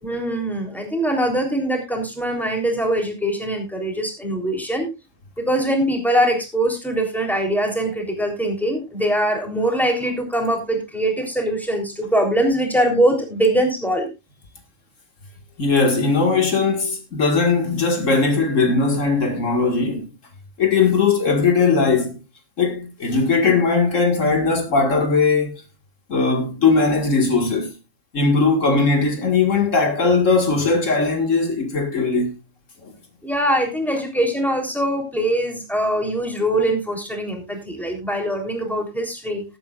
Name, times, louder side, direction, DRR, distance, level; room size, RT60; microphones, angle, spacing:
voice 1, 0.0-4.9 5.4-14.1 33.2-39.4, right 1 dB, ahead, 3.5 m, -22 dB
voice 2, 15.6-20.1 20.6-22.2 22.6-25.6 26.1-27.7 28.1-32.3 32.8-32.9, left 4 dB, 75° left, 2.3 m, -19 dB
19.0 x 8.9 x 2.5 m
omnidirectional pair, 1.3 m